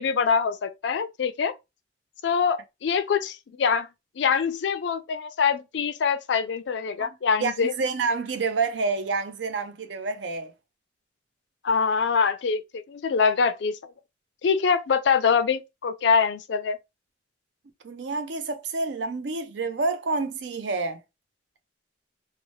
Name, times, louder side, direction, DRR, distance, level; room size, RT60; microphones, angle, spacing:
voice 1, 0.0-1.5 2.2-3.9 4.2-7.7 11.6-13.9 14.4-16.8, left 6 dB, 70° left, 0.4 m, -24 dB
voice 2, 7.0-10.5 17.8-21.0, right 4 dB, 75° right, 0.5 m, -28 dB
2.8 x 2.1 x 3.0 m
head